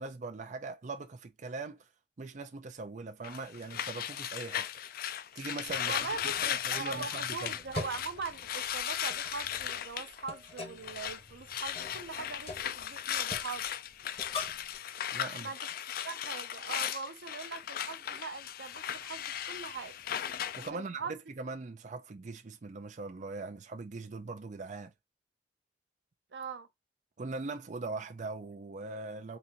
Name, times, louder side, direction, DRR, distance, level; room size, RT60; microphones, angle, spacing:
voice 1, 0.0-1.9 2.2-4.7 5.4-5.9 6.4-7.5 15.1-15.5 20.6-24.9 27.2-29.4, right 3 dB, 45° right, 0.5 m, -41 dB
sound 1, 3.2-11.2 11.5-20.7, left 10 dB, 55° left, 0.4 m, -37 dB
sound 2, 5.6-14.8, left 3 dB, 35° left, 1.2 m, -45 dB
voice 2, 5.9-13.7 15.2-15.6 16.0-19.9 20.7-21.1 26.3-26.7, right 5 dB, 80° right, 0.7 m, -41 dB
4.0 x 3.4 x 2.9 m
head